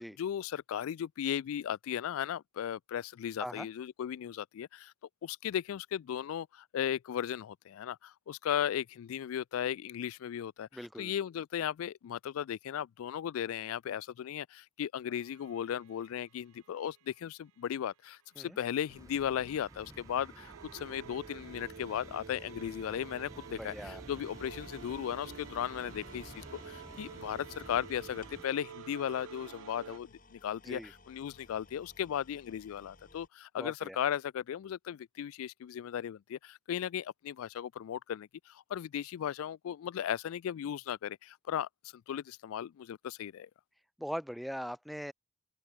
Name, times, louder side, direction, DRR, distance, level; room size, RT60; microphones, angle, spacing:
voice 1, 0.0-4.9 5.2-10.7 11.0-43.5, left 9 dB, 80° left, 0.3 m, -36 dB
voice 2, 10.7-11.1 18.4-18.6 23.6-24.0 30.6-30.9 33.6-34.0 44.0-45.1, equal, ahead, 0.3 m, -40 dB
sound 1, 15.1-17.0 18.5-30.0, right 7 dB, 80° right, 0.4 m, -50 dB
sound 2, 18.9-28.4, right 1 dB, 15° right, 1.3 m, -52 dB
sound 3, 24.2-33.3, left 3 dB, 40° left, 3.6 m, -57 dB
open air
head